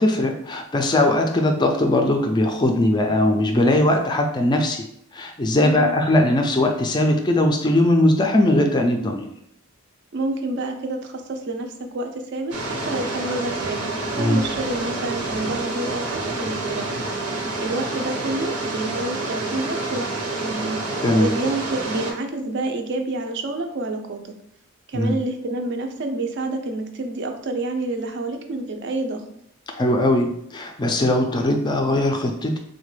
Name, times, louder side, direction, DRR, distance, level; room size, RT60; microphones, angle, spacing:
voice 1, 0.0-4.9 5.1-9.2 14.2-14.4 21.0-21.3 24.9-25.2 29.7-32.6, left 1 dB, 20° left, 3 dB, 0.3 m, -20 dB
voice 2, 5.6-6.0 10.1-17.0 17.6-20.1 20.4-20.8 21.1-24.3 24.9-29.2, right 2 dB, 50° right, 5 dB, 0.4 m, -28 dB
sound 1, 12.5-22.1, right 2 dB, 85° right, 0.8 m, -28 dB
3.9 x 2.2 x 3.1 m, 0.73 s
head